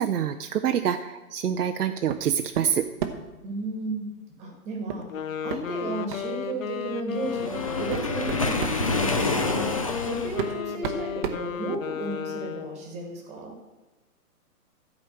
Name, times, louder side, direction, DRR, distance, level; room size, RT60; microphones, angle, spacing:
voice 1, 0.0-2.8, right 9 dB, 80° right, 6 dB, 0.7 m, -26 dB
sound 1, 2.1-2.3 2.5-3.3 4.9-5.1 5.5-5.6 6.1-6.3 7.1-7.2 7.7-8.8 9.9-10.0 10.4-12.1, right 7 dB, 30° right, 0.8 m, -33 dB
voice 2, 3.4-4.1 4.4-5.1 5.4-13.5, right 3 dB, 15° right, 2 dB, 1.5 m, -34 dB
Wind instrument woodwind instrument, 5.0-12.9, left 8 dB, 60° left, 0.8 m, -34 dB
Waves surf, 7.2-10.5, left 3 dB, 25° left, 0.4 m, -28 dB
12.5 x 5.1 x 7.5 m, 1.1 s
hypercardioid pair, 150°, 46 cm